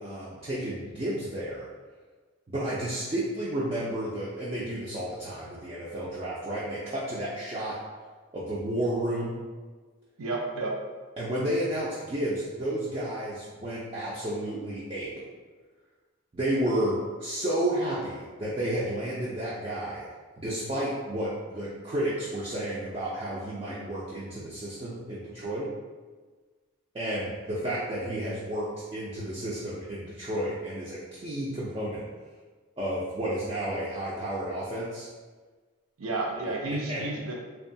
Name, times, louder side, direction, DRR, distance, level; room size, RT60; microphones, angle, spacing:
voice 1, 0.0-1.7 2.5-7.8 8.3-9.4 11.2-15.1 16.3-20.0 20.4-25.7 26.9-32.0 32.8-35.1 36.4-37.0, right 1 dB, 25° right, -8 dB, 0.3 m, -31 dB
voice 2, 10.2-10.8 36.0-37.3, right 2 dB, 90° right, -1 dB, 0.5 m, -31 dB
2.7 x 2.2 x 2.6 m, 1.4 s
head